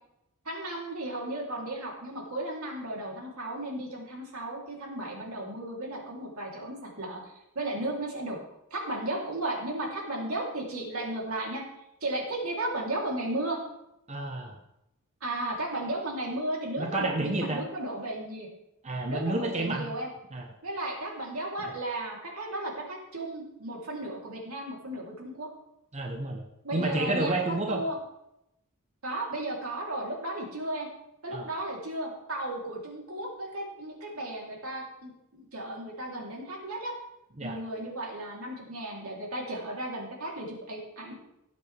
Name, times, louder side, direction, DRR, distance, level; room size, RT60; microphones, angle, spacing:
voice 1, 0.4-8.4 8.7-11.6 12.0-13.6 15.2-18.5 19.0-20.1 20.6-25.5 26.6-27.3 27.7-27.9 29.0-30.9 31.2-36.9 37.4-41.1, right 1 dB, 70° right, -2 dB, 3.4 m, -34 dB
voice 2, 14.1-14.6 16.8-17.6 18.8-19.9 20.3-20.5 25.9-26.4 26.7-27.8 31.3-31.5 37.4-37.6, right 2 dB, 30° right, 2 dB, 1.0 m, -30 dB
19.5 x 8.1 x 3.5 m, 0.85 s
head